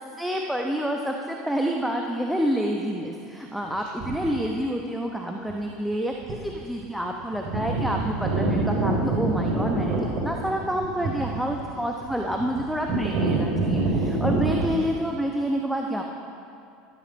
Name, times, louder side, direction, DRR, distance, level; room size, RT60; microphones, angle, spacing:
voice 1, 0.2-16.0, equal, ahead, 1 dB, 1.0 m, -28 dB
sound 1, 4.0-4.4 5.5-5.6 6.2-6.6 6.9-7.0 7.2-14.7, right 3 dB, 45° right, 2.9 m, -26 dB
12.5 x 12.5 x 5.2 m, 2.5 s
figure-of-eight pair, 75°, 0 cm